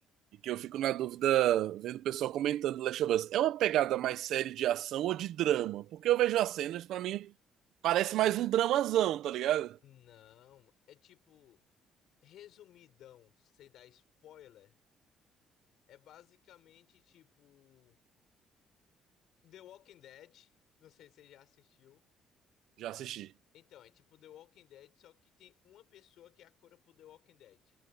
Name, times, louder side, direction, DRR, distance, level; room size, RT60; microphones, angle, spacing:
voice 1, 0.4-7.3 7.8-9.8 22.8-23.3, right 13 dB, 65° right, 1.0 m, -30 dB
voice 2, 9.8-11.6 12.2-14.8 15.9-18.0 19.4-22.0 23.5-27.8, left 12 dB, 60° left, 7.4 m, -58 dB
cardioid pair, 170°, 0 cm